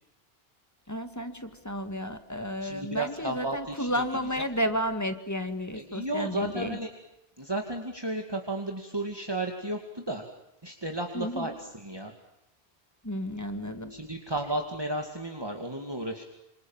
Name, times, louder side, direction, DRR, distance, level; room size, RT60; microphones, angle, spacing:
voice 1, 0.9-6.8 11.1-11.5 13.0-14.0, equal, 15° left, 8 dB, 2.2 m, -32 dB
voice 2, 2.6-4.0 5.7-6.9 7.4-10.2 10.6-12.1 13.9-16.2, right 1 dB, 25° right, 3 dB, 2.5 m, -33 dB
27.5 x 27.5 x 7.4 m, 0.87 s
omnidirectional pair, 1.0 m